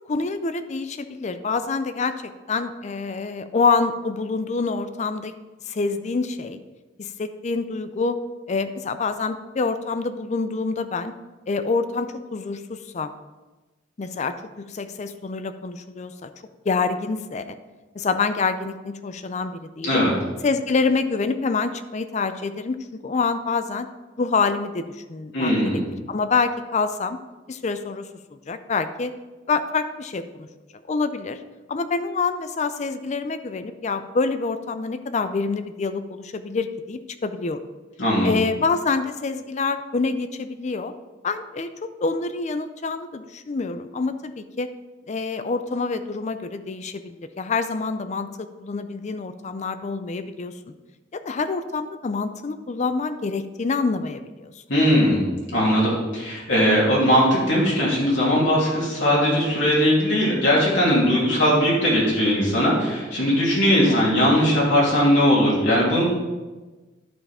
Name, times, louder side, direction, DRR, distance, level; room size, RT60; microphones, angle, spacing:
voice 1, 0.1-5.4 5.7-6.6 7.0-8.2 8.5-11.1 11.5-13.1 14.0-16.3 16.7-17.6 17.9-20.1 20.4-22.8 23.0-23.9 24.2-25.8 26.1-27.2 27.5-29.1 29.5-30.5 30.9-31.4 31.7-37.6 38.2-40.9 41.2-44.7 45.1-50.5 51.1-54.5 63.9-64.1, left 4 dB, 40° left, 11 dB, 0.4 m, -26 dB
voice 2, 19.8-20.1 25.3-25.8 38.0-38.3 54.7-55.3 55.5-66.1, equal, 80° left, -6 dB, 2.8 m, -19 dB
11.0 x 5.5 x 4.3 m, 1.2 s
head